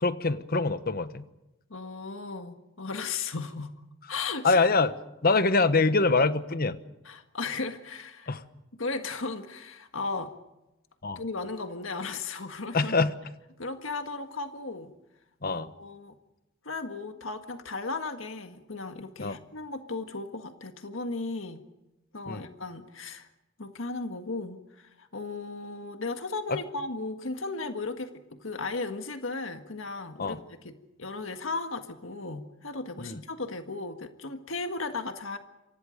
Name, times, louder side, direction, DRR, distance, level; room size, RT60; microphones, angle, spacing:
voice 1, 0.0-1.3 4.4-4.9 5.2-6.8 8.3-8.4 11.0-11.2 12.7-13.1 15.4-15.7 19.2-19.4 22.3-22.5 26.5-26.6 30.2-30.4 33.0-33.2, left 3 dB, 50° left, 12 dB, 1.2 m, -24 dB
voice 2, 1.7-3.7 4.1-4.6 7.1-8.3 8.8-10.3 11.2-12.9 13.6-14.9 15.5-16.1 16.6-21.6 22.1-23.3 23.6-35.4, left 3 dB, 75° left, 7 dB, 1.8 m, -36 dB
28.5 x 24.5 x 5.2 m, 0.95 s
head